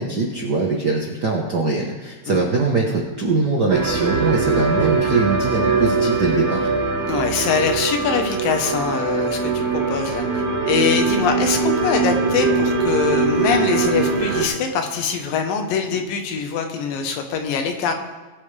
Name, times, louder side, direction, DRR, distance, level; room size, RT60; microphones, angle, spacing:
voice 1, 0.0-6.7, right 3 dB, 65° right, -1 dB, 1.0 m, -22 dB
sound 1, 3.7-14.5, right 4 dB, 90° right, 4.0 m, -21 dB
voice 2, 7.1-17.9, left 6 dB, 85° left, 5 dB, 3.0 m, -23 dB
21.5 x 8.7 x 3.4 m, 1.2 s
omnidirectional pair, 3.9 m